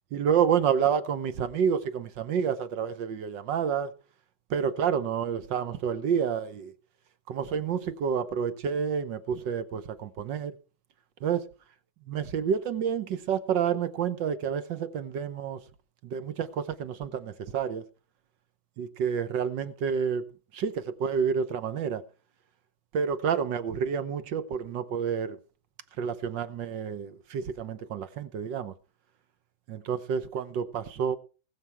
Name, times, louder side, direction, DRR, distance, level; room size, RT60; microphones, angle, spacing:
voice 1, 0.1-3.9 4.5-6.7 7.3-10.6 11.2-11.5 12.1-15.6 16.0-17.8 18.8-20.3 20.5-22.0 22.9-25.4 26.0-28.7 29.7-31.2, right 7 dB, 65° right, 1.5 m, -29 dB
19.0 x 7.1 x 4.5 m
omnidirectional pair, 2.3 m